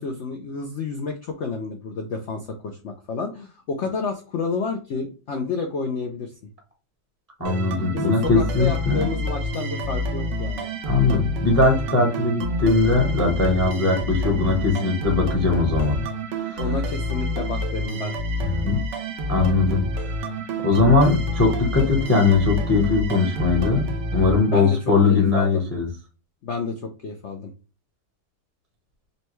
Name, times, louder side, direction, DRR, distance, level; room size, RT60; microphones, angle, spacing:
voice 1, 0.0-6.3 7.9-10.7 14.2-14.4 16.6-18.2 24.5-25.6 26.4-27.5, left 4 dB, 70° left, 4 dB, 0.6 m, -30 dB
voice 2, 7.4-9.1 10.9-16.0 16.4-16.6 18.4-18.8 19.3-19.8 20.6-25.9, left 3 dB, 15° left, 2 dB, 0.6 m, -20 dB
sound 1, 7.5-25.0, equal, 85° right, 1.4 m, -28 dB
5.3 x 2.2 x 3.0 m, 0.35 s
omnidirectional pair, 1.9 m